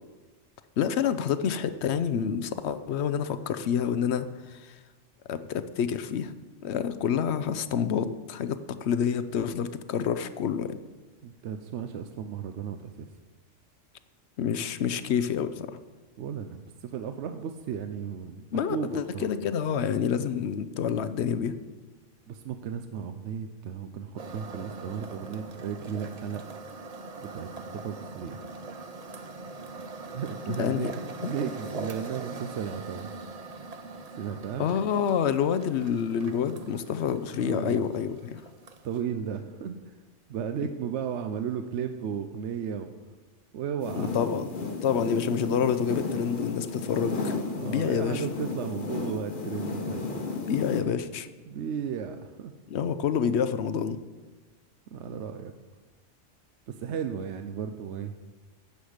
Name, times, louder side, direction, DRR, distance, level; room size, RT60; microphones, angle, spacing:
voice 1, 0.8-4.8 5.3-6.3 6.6-10.8 14.4-15.8 18.5-21.5 30.5-30.9 31.2-31.3 34.6-38.4 44.0-44.5 44.8-47.4 47.7-48.2 50.5-51.3 52.7-54.0, left 8 dB, 65° left, 12 dB, 0.8 m, -28 dB
voice 2, 11.2-13.1 16.2-19.3 22.3-26.4 27.2-28.4 30.0-33.1 34.2-34.7 37.3-37.8 38.8-40.0 40.3-42.9 43.5-44.1 47.5-50.1 51.5-52.5 54.9-55.5 56.7-58.2, right 7 dB, 70° right, 8 dB, 0.9 m, -35 dB
sound 1, 24.2-39.0, right 3 dB, 40° right, 0.7 m, -42 dB
sound 2, 43.8-50.8, left 3 dB, 45° left, 1.2 m, -34 dB
12.0 x 8.1 x 5.0 m, 1.2 s
omnidirectional pair, 1.3 m